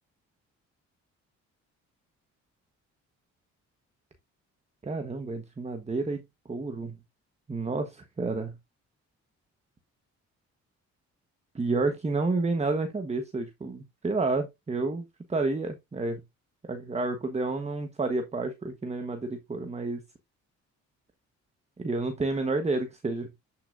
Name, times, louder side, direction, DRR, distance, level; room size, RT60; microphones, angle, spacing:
voice 1, 4.8-7.0 7.5-8.5 11.5-16.2 16.6-20.0 21.8-23.3, right 3 dB, 20° right, 1.2 m, -30 dB
10.0 x 5.9 x 2.6 m
cardioid pair, 90°, 30 cm